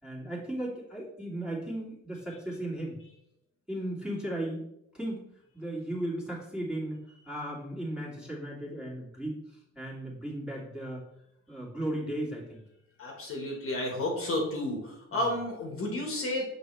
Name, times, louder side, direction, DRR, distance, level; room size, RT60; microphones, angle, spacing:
voice 1, 0.0-3.0 3.7-4.7 4.9-5.3 5.5-7.0 7.3-11.0 11.5-12.6 15.1-15.2, right 1 dB, 5° right, -5 dB, 2.2 m, -36 dB
voice 2, 13.0-16.4, left 1 dB, 45° left, 0 dB, 1.6 m, -31 dB
6.0 x 4.9 x 3.3 m, 0.80 s
cardioid pair, 90°, 30 cm